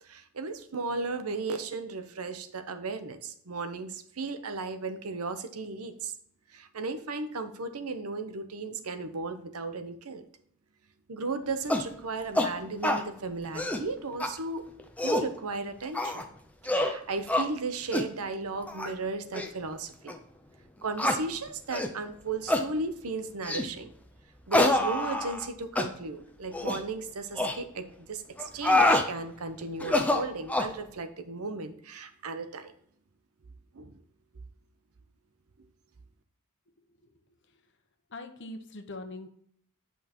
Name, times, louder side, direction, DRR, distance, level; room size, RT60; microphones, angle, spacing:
voice 1, 0.0-6.1 6.5-10.2 11.1-14.7 15.0-16.2 16.6-20.2 20.8-23.9 24.5-32.7 33.7-34.0, right 3 dB, 85° right, 9 dB, 0.8 m, -35 dB
sound 1, 11.7-11.9 12.3-12.5 12.8-13.0 13.4-13.8 14.2-14.3 14.8-15.3 15.9-16.2 16.6-16.9 17.3-17.5 17.9-18.1 18.7-18.9 19.3-19.5 20.1-20.2 21.0-21.2 21.7-21.9 22.5-22.7 23.4-23.7 24.5-25.5 25.8-25.9 26.5-26.8 27.4-27.6 28.4-29.1 29.8-30.7, left 1 dB, 5° left, 0.6 m, -26 dB
voice 2, 38.1-39.3, left 2 dB, 55° left, 7 dB, 1.0 m, -41 dB
8.8 x 5.5 x 3.0 m, 0.65 s
head